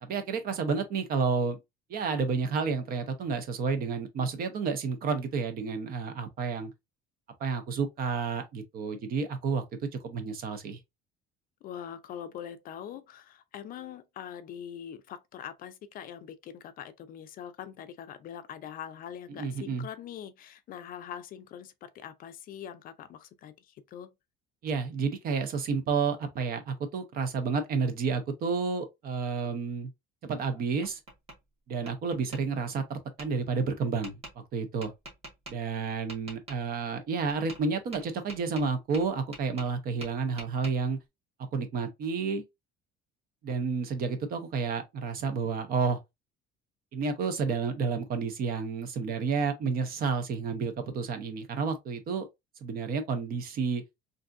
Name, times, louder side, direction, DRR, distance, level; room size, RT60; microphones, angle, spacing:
voice 1, 0.0-1.6 1.9-6.7 7.4-9.6 10.0-10.8 19.3-19.9 24.6-29.9 30.2-31.0 31.7-34.1 34.5-34.9 35.5-41.0 41.5-42.4 43.4-46.0 46.9-52.3 52.6-53.8, right 5 dB, 50° right, 0.7 m, -30 dB
voice 2, 11.6-24.1, left 9 dB, 45° left, 0.4 m, -43 dB
Tap, 30.3-31.4 31.9-32.4 33.2-33.3 34.0-34.3 34.8-35.5 36.1-36.6 37.3-37.6 37.9-39.8 40.0-40.7, right 2 dB, 30° right, 1.4 m, -45 dB
3.4 x 2.6 x 2.5 m
cardioid pair, 155°, 20 cm